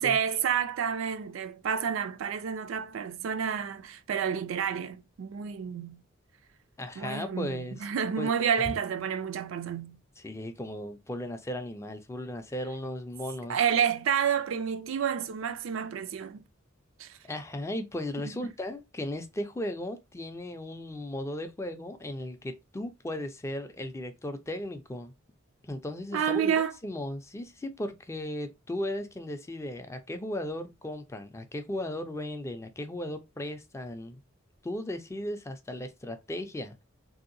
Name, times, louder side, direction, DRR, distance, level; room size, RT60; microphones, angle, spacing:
voice 1, 0.0-6.0 7.0-10.0 13.5-16.4 17.0-17.2 26.1-26.7, right 7 dB, 70° right, 0.4 m, -29 dB
voice 2, 6.8-7.9 8.2-8.3 10.2-13.6 17.2-25.1 25.7-34.2 34.6-36.8, left 1 dB, 15° left, 0.3 m, -36 dB
3.2 x 2.7 x 2.5 m
head